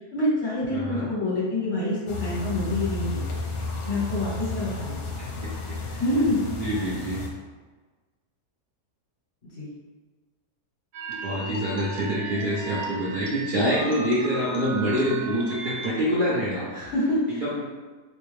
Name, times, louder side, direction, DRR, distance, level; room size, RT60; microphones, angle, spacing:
voice 1, 0.0-3.3 3.8-4.9 6.0-6.4 9.6-9.7 16.7-17.4, left 1 dB, 55° left, -8 dB, 1.1 m, -26 dB
voice 2, 0.7-1.1 5.2-5.5 5.9-6.0 6.4-7.2 11.2-16.7 17.3-17.7, equal, 55° right, -8 dB, 0.5 m, -26 dB
sound 1, 2.1-7.3, left 3 dB, 70° left, 1.1 m, -32 dB
sound 2, 10.9-16.0, right 2 dB, 85° right, 1.2 m, -36 dB
3.3 x 3.0 x 3.1 m, 1.3 s
omnidirectional pair, 1.7 m